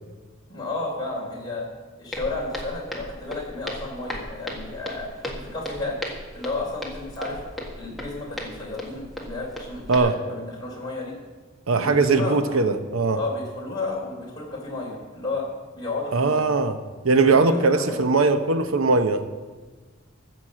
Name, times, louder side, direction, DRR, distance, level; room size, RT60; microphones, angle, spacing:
voice 1, 0.5-1.7 2.0-6.0 6.3-7.4 7.7-11.1 11.7-12.6 13.2-15.5 15.7-16.5 17.2-18.0, left 2 dB, 20° left, -3 dB, 3.8 m, -32 dB
Walk footsteps, 2.1-10.0, left 1 dB, ahead, 1.7 m, -36 dB
voice 2, 11.7-13.2 16.1-16.8 17.0-19.2, right 3 dB, 90° right, 9 dB, 0.8 m, -20 dB
15.0 x 6.2 x 7.4 m, 1.4 s
head